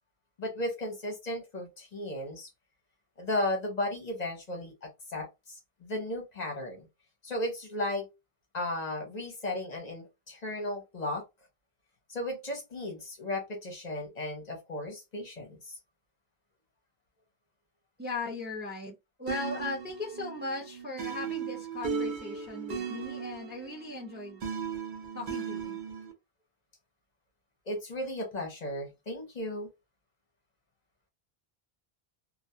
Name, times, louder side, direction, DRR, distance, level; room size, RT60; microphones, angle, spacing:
voice 1, 0.4-2.5 3.2-6.9 7.2-8.1 8.5-11.2 12.1-15.8 27.7-29.7, left 1 dB, 50° left, 0.7 m, -35 dB
voice 2, 18.0-24.5 25.1-25.8, left 3 dB, 15° right, 0.5 m, -38 dB
sound 1, 19.3-26.1, right 6 dB, 55° right, 0.7 m, -37 dB
2.3 x 2.2 x 2.6 m
omnidirectional pair, 1.0 m